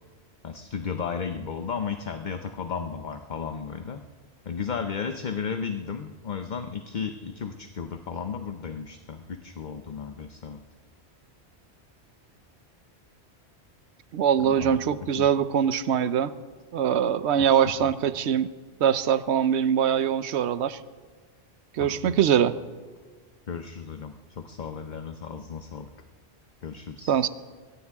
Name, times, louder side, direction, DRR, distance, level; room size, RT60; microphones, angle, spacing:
voice 1, 0.4-4.0 4.5-10.6 14.4-14.8 15.2-15.3 17.4-17.9 21.8-22.2 23.5-25.9 26.6-27.2, left 6 dB, 50° left, 7 dB, 0.8 m, -34 dB
voice 2, 14.1-16.3 16.7-18.5 18.8-20.8 21.7-22.6 27.1-27.3, right 8 dB, 80° right, 15 dB, 0.9 m, -23 dB
22.0 x 17.0 x 3.6 m, 1.5 s
omnidirectional pair, 1.1 m